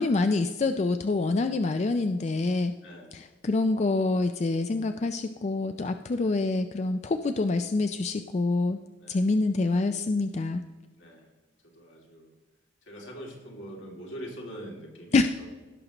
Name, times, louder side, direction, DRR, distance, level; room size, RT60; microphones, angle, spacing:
voice 1, 0.0-2.7 3.1-8.8 9.1-10.6 15.1-15.3, left 3 dB, 35° left, 8 dB, 0.3 m, -26 dB
voice 2, 2.8-3.1 6.2-6.3 9.0-9.2 11.0-11.3 11.6-12.4 12.8-15.5, equal, 75° left, -1 dB, 2.5 m, -43 dB
17.0 x 6.5 x 3.0 m, 1.3 s
head